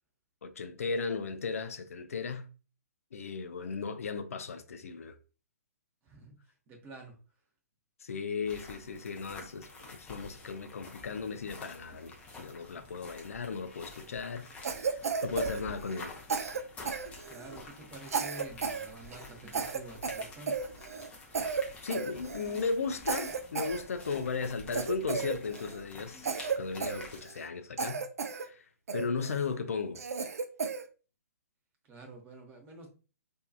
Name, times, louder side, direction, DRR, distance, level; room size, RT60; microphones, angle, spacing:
voice 1, 0.4-2.5 3.1-5.2 8.0-16.2 21.8-26.3 26.6-28.0 28.3-28.7 28.9-30.0, left 4 dB, 65° left, 0.4 m, -36 dB
voice 2, 6.0-7.2 12.7-12.8 17.3-20.6 31.8-32.9, right 2 dB, 20° right, 0.7 m, -49 dB
walking in the woods, 8.4-27.2, left 3 dB, 15° left, 0.6 m, -49 dB
Cough, 14.6-16.0 16.3-17.6 18.1-18.9 19.1-19.2 19.5-21.1 21.3-21.6 21.9-22.6 23.0-24.2 24.7-25.8 26.2-27.5 27.8-28.4 28.9-29.4 29.9-30.8, right 5 dB, 70° right, 0.4 m, -34 dB
2.6 x 2.3 x 2.3 m
figure-of-eight pair, 125°, 8 cm